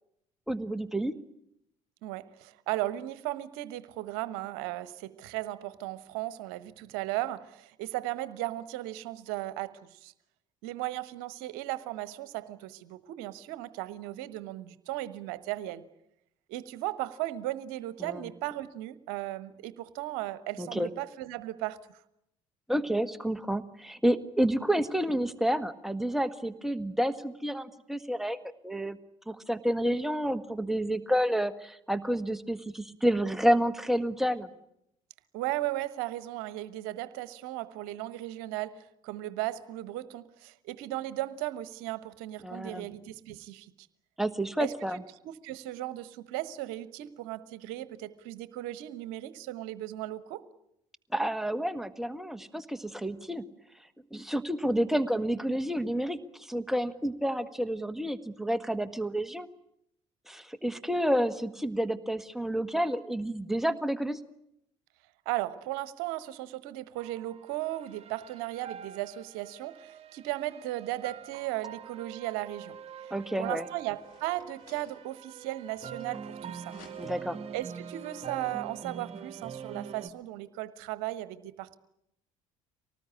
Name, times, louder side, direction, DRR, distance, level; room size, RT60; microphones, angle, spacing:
voice 1, 0.5-1.1 18.0-18.3 20.6-20.9 22.7-29.0 29.3-34.5 42.4-42.9 44.2-45.0 51.1-53.4 54.1-59.5 60.3-64.2 73.1-73.6 77.0-77.4, equal, ahead, 9 dB, 1.5 m, -29 dB
voice 2, 2.0-10.1 10.6-15.8 16.5-21.9 35.3-43.9 44.6-50.4 65.2-73.1 73.4-76.8 77.5-81.8, right 15 dB, 65° right, 16 dB, 1.2 m, -36 dB
sound 1, 67.0-80.1, right 7 dB, 35° right, 1.8 m, -44 dB
sound 2, 73.2-73.3 73.8-76.3 76.6-77.4, left 6 dB, 60° left, 3.8 m, -58 dB
25.0 x 19.0 x 9.8 m, 0.79 s
figure-of-eight pair, 55°, 17 cm